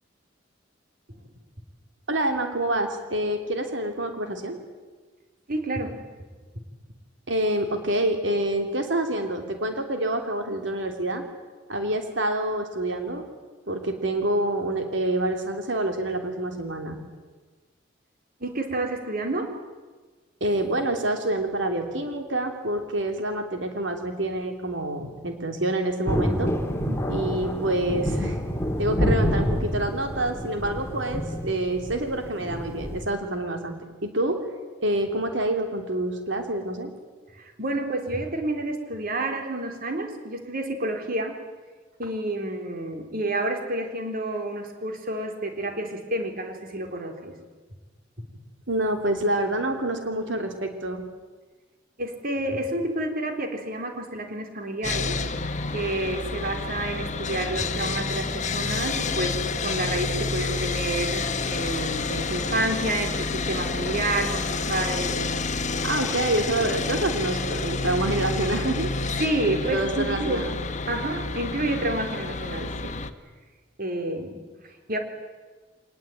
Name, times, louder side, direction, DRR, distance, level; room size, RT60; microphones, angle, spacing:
voice 1, 2.1-4.6 7.3-11.2 11.7-13.3 13.7-17.0 20.4-26.5 27.1-28.4 28.8-33.7 34.0-34.4 34.8-36.9 48.7-51.0 65.8-68.9 69.7-70.6, right 1 dB, 75° right, 5 dB, 3.2 m, -27 dB
voice 2, 5.5-6.0 18.4-19.5 26.9-27.2 37.3-41.4 42.0-47.3 52.0-55.2 55.4-65.2 69.2-70.5 70.9-73.0 73.8-75.0, right 1 dB, 50° right, 5 dB, 3.9 m, -29 dB
Thunder, 26.1-33.0, equal, 15° left, 2.1 m, -27 dB
Sawing, 54.8-73.1, left 4 dB, 40° left, 1.3 m, -29 dB
24.5 x 20.0 x 9.3 m, 1.4 s
head